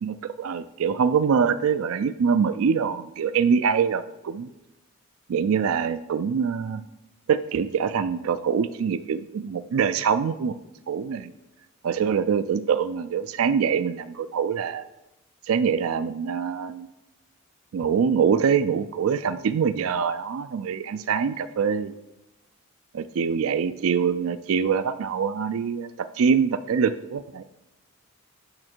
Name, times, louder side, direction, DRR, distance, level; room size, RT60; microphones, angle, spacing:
voice 1, 0.0-4.5 5.3-6.8 7.3-10.5 10.9-11.3 11.8-14.8 15.5-16.9 17.7-21.9 22.9-27.4, right 6 dB, 80° right, 11 dB, 0.4 m, -24 dB
8.6 x 6.5 x 4.4 m, 0.97 s
head